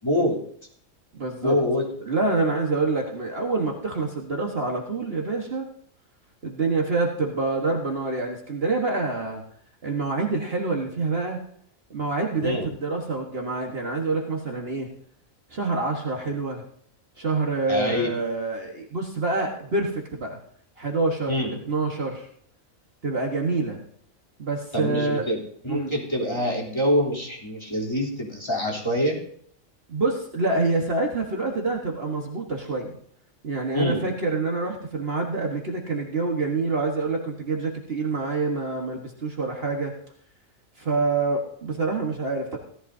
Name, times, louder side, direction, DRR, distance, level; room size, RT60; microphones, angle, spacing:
voice 1, 0.0-0.4 1.4-1.9 12.4-12.7 17.7-18.1 21.3-21.5 24.7-29.2 33.7-34.0, left 1 dB, 20° left, -4 dB, 3.4 m, -25 dB
voice 2, 1.1-1.6 2.0-5.7 6.4-9.4 9.8-11.4 11.9-14.9 15.5-16.6 17.2-20.4 20.8-21.4 21.6-22.3 23.0-23.8 24.4-25.3 25.7-25.9 29.9-33.0 33.4-39.9 40.8-42.6, right 3 dB, 50° right, 1 dB, 1.6 m, -26 dB
17.0 x 14.0 x 2.7 m, 0.63 s
omnidirectional pair, 1.4 m